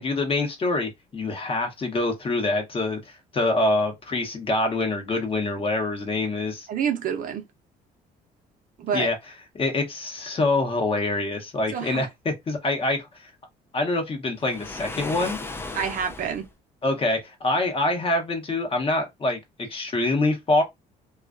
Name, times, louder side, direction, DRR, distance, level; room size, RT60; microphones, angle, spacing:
voice 1, 0.0-6.7 8.9-9.1 9.5-13.1 13.7-15.4 16.8-19.4 19.7-20.6, left 2 dB, 35° left, 0.9 m, -25 dB
voice 2, 6.7-7.4 8.8-9.1 11.7-12.1 15.7-16.5, right 7 dB, 55° right, 0.6 m, -27 dB
Waves surf, 14.4-16.5, left 3 dB, 15° left, 0.4 m, -36 dB
2.3 x 2.2 x 2.4 m
cardioid pair, 110°, 17 cm